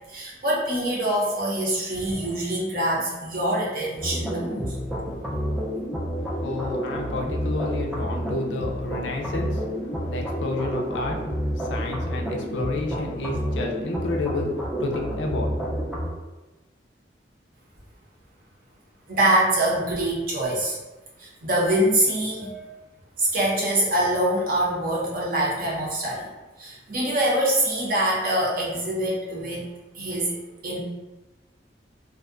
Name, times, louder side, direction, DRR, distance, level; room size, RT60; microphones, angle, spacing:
voice 1, 0.1-4.7 19.1-20.8 21.2-22.8 23.2-26.3 26.6-29.7 29.9-30.3 30.6-30.8, right 1 dB, 50° right, -4 dB, 0.7 m, -24 dB
sound 1, 4.0-16.1, equal, 5° right, 0.4 m, -29 dB
voice 2, 6.2-14.5 14.8-15.6, left 3 dB, 85° left, 1 dB, 0.4 m, -31 dB
2.5 x 2.1 x 2.4 m, 1.1 s
head